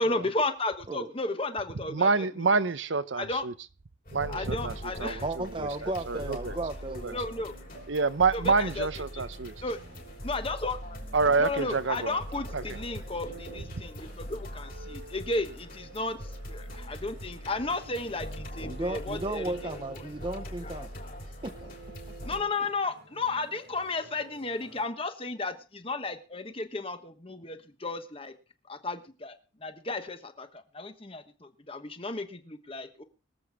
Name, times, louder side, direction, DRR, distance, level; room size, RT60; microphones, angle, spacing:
voice 1, 0.0-2.1 3.2-3.4 4.3-5.2 7.1-7.5 8.3-8.9 9.6-9.8 10.2-10.8 11.4-19.5 20.0-20.1 20.6-20.7 22.2-28.3 28.7-33.0, left 2 dB, 30° left, 1.2 m, -33 dB
voice 2, 1.9-3.5 4.1-6.6 6.9-7.1 7.9-9.5 11.1-12.2 12.5-12.8 13.7-13.8, right 4 dB, 70° right, 0.7 m, -28 dB
sound 1, 4.1-22.4, equal, 45° left, 3.7 m, -42 dB
voice 3, 5.2-7.2 18.6-20.9 21.4-21.7, right 2 dB, 25° right, 0.6 m, -34 dB
sound 2, 5.9-24.9, right 3 dB, 90° right, 3.4 m, -51 dB
23.5 x 7.9 x 3.6 m
head